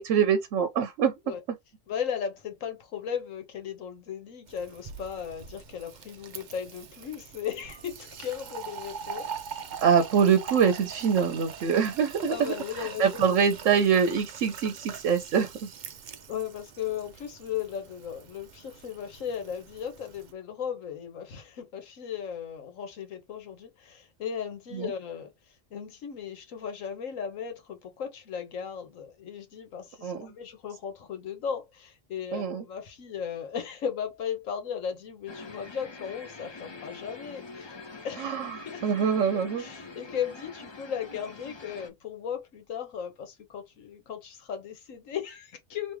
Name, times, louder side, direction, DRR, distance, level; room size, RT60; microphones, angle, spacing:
voice 1, 0.0-1.1 9.8-15.7 24.7-24.9 30.0-30.3 32.3-32.6 38.2-39.6, right 7 dB, 75° right, 1.0 m, -25 dB
voice 2, 1.9-9.3 12.3-13.3 16.3-37.8 38.0-38.4 38.6-38.8 39.3-46.0, left 8 dB, 90° left, 1.3 m, -36 dB
Fill (with liquid), 4.5-20.3, right 7 dB, 55° right, 0.5 m, -43 dB
sound 1, 35.3-41.9, left 3 dB, 35° left, 0.4 m, -45 dB
3.1 x 2.9 x 3.4 m
omnidirectional pair, 1.3 m